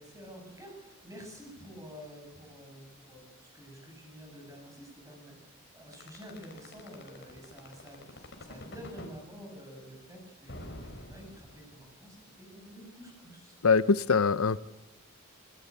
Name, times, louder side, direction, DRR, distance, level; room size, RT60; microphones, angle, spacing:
voice 1, 0.0-13.6, equal, 15° right, 2 dB, 7.6 m, -49 dB
sound 1, 5.9-9.2 10.5-11.9, left 1 dB, 55° left, 4.3 m, -45 dB
voice 2, 13.6-14.6, left 5 dB, 90° left, 16 dB, 0.8 m, -23 dB
26.0 x 15.5 x 8.6 m, 1.1 s
head